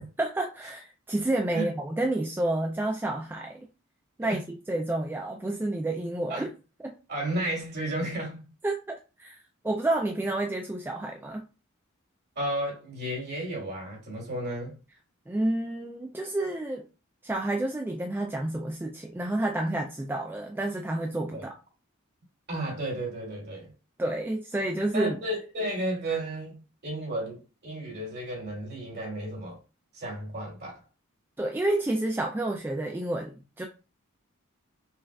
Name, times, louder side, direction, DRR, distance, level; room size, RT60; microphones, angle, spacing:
voice 1, 0.2-3.7 4.2-6.5 6.8-6.9 8.6-9.4 9.6-11.4 15.3-16.8 17.2-21.6 24.0-25.1 31.4-33.6, right 1 dB, 10° right, 0.3 m, -29 dB
voice 2, 7.1-8.5 12.4-14.7 21.3-21.5 22.5-23.7 24.9-29.6 29.9-30.8, right 1 dB, 50° right, 2.2 m, -33 dB
5.5 x 2.4 x 2.3 m
head